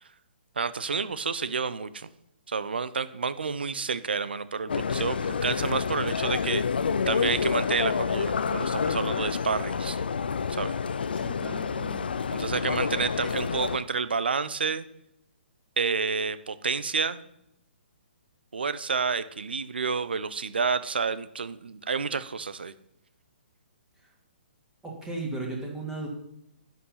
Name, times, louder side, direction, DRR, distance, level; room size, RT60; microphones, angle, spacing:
voice 1, 0.6-2.1 2.5-6.6 7.1-10.0 10.5-10.7 12.3-14.9 15.8-17.2 18.5-22.7, right 5 dB, 60° right, 15 dB, 0.8 m, -29 dB
sound 1, 4.7-13.8, left 6 dB, 60° left, 0.6 m, -28 dB
voice 2, 11.1-12.2 24.0-24.1 24.8-26.1, right 2 dB, 10° right, -1 dB, 2.2 m, -36 dB
11.0 x 9.0 x 5.8 m, 0.80 s
figure-of-eight pair, 125°, 6 cm